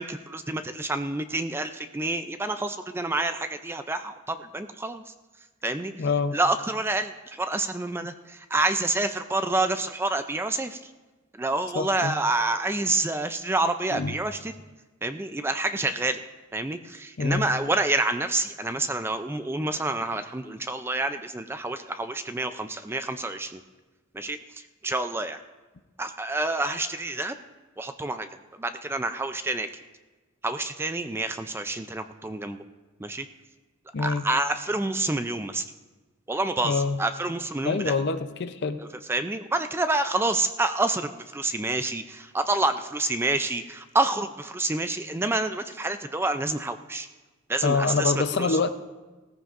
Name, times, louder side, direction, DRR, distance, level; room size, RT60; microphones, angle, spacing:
voice 1, 0.0-5.0 5.6-6.1 6.3-10.9 11.4-14.5 15.0-16.2 16.5-23.6 24.1-25.4 26.0-27.4 27.8-28.3 28.6-29.7 30.4-32.6 33.0-33.3 34.0-35.6 36.3-37.9 38.8-47.1 47.5-48.6, right 2 dB, 10° right, 9 dB, 0.4 m, -28 dB
voice 2, 6.0-6.4 11.8-12.2 13.9-14.1 17.2-17.5 33.9-34.3 36.6-37.0 37.6-38.8 47.6-48.7, left 4 dB, 55° left, 10 dB, 0.6 m, -25 dB
17.0 x 14.5 x 2.5 m, 1.2 s
head